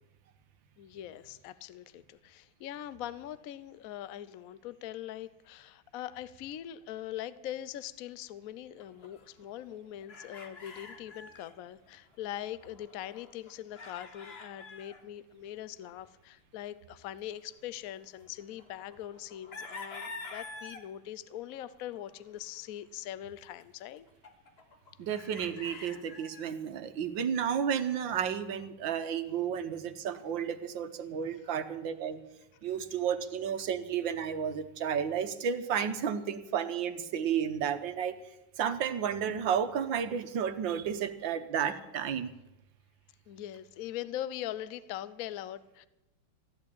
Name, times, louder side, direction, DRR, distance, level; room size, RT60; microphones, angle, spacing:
voice 1, 0.8-24.1 43.3-45.9, left 12 dB, 65° left, 16 dB, 0.9 m, -42 dB
sound 1, 8.8-11.6 11.9-12.0 12.1-15.0 15.9-16.0 18.0-20.8 21.6-22.4 23.6-23.7 23.9-26.5 28.0-28.7, left 3 dB, 35° left, 1.4 m, -48 dB
voice 2, 25.0-32.2 32.6-38.2 38.6-42.3, right 8 dB, 75° right, 9 dB, 1.7 m, -32 dB
14.5 x 11.0 x 8.8 m, 0.95 s
omnidirectional pair, 2.1 m